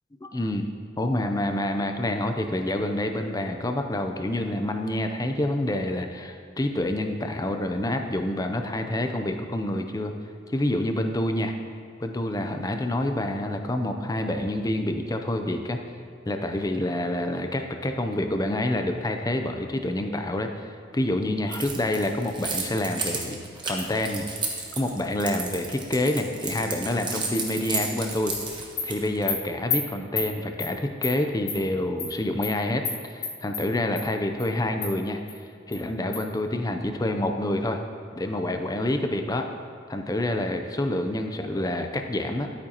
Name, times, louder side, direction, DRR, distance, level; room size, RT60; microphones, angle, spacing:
voice 1, 0.2-0.7 1.0-10.1 10.5-11.5 12.0-15.8 16.3-24.3 24.8-35.2 35.7-37.8 38.1-39.5 39.9-42.5, left 1 dB, 20° left, 5 dB, 0.5 m, -27 dB
Keys jangling, 21.5-29.2, right 4 dB, 25° right, 1.1 m, -33 dB
Animal, 27.3-27.4 27.8-27.9 28.3-28.4 28.8-28.9 29.3-29.4 29.7-29.8 30.2-30.3 30.6-30.7 31.0-31.1 31.5-31.6 32.0-32.1 32.4-32.5 32.8-33.0 33.2-33.6 34.0-34.1 34.4-34.5 34.8-34.9 35.3-35.4 35.7-35.8 36.1-36.2, left 5 dB, 60° left, 2.6 m, -29 dB
12.0 x 8.6 x 2.9 m, 2.3 s
head